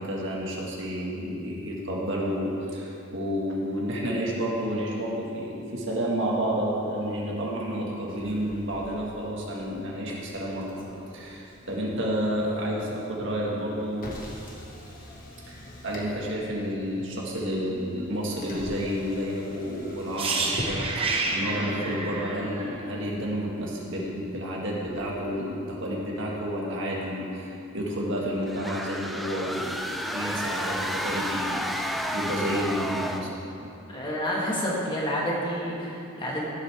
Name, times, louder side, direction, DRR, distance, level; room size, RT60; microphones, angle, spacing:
voice 1, 0.0-10.9 11.1-14.1 15.5-34.1, equal, 60° right, -3 dB, 1.9 m, -30 dB
Motor vehicle (road), 8.1-25.2, equal, 40° left, 1.6 m, -44 dB
sound 1, 20.2-24.0 24.3-24.5, right 3 dB, 25° right, 1.0 m, -30 dB
sound 2, 28.5-33.4, equal, ahead, 0.3 m, -31 dB
voice 2, 33.9-36.5, equal, 25° left, -4 dB, 1.7 m, -29 dB
16.0 x 8.0 x 3.6 m, 2.7 s
head